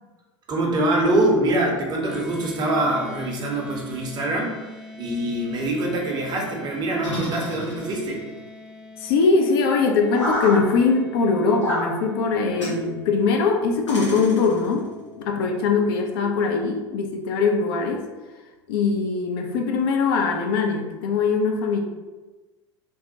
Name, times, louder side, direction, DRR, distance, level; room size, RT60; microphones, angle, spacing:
voice 1, 0.5-4.5 5.0-8.3, right 1 dB, 30° right, -1 dB, 0.7 m, -24 dB
sound 1, 2.1-16.5, left 2 dB, 5° right, 0.4 m, -44 dB
sound 2, 7.0-8.2 10.1-10.6 11.6-11.9 12.6-12.8 13.9-14.7, equal, 85° left, 1.0 m, -28 dB
voice 2, 9.0-14.9 15.2-18.0 18.7-21.8, left 4 dB, 55° left, 2 dB, 0.5 m, -21 dB
3.3 x 2.1 x 2.7 m, 1.2 s
figure-of-eight pair, 80°, 15 cm